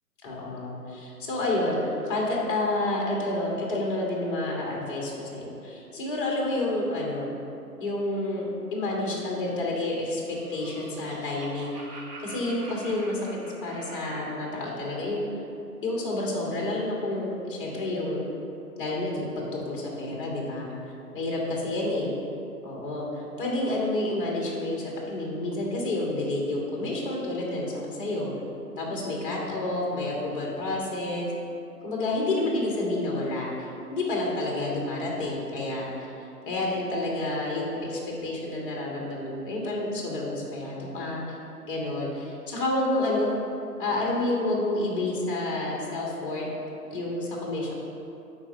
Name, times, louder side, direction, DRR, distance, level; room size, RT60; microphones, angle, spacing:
voice 1, 0.2-7.3 7.8-13.2 13.6-15.2 15.8-18.2 18.8-20.7 21.1-22.1 22.6-28.3 28.8-31.3 31.8-36.1 36.4-41.4 41.7-43.3 43.8-46.5 46.9-47.7, left 2 dB, 35° left, -2 dB, 1.3 m, -29 dB
Laughter, 10.0-14.5, right 2 dB, 70° right, 1.4 m, -45 dB
11.0 x 4.4 x 2.6 m, 2.7 s
hypercardioid pair, 145°, 48 cm